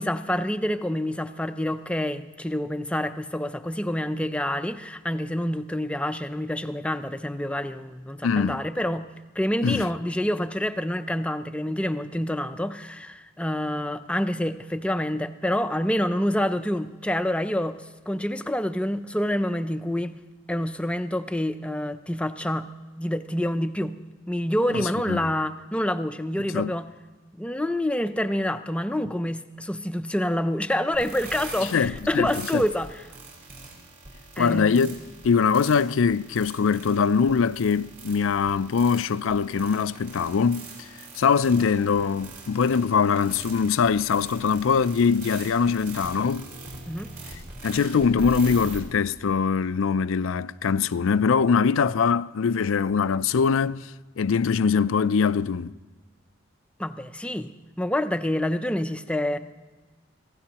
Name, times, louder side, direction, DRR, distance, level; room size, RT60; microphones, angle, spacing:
voice 1, 0.0-9.1 9.4-20.2 20.5-22.7 23.0-24.0 24.3-26.9 27.4-33.0 34.4-34.9 46.9-47.1 56.8-57.5 57.8-59.4, left 1 dB, 5° left, 0.5 m, -27 dB
voice 2, 8.2-8.6 9.6-9.9 24.7-25.3 26.5-26.7 31.7-32.6 34.4-35.0 35.2-40.9 41.2-46.5 47.6-53.9 54.2-55.7, left 6 dB, 85° left, 0.4 m, -22 dB
sound 1, 30.9-48.8, right 2 dB, 45° right, 4.8 m, -42 dB
24.5 x 16.5 x 2.9 m
head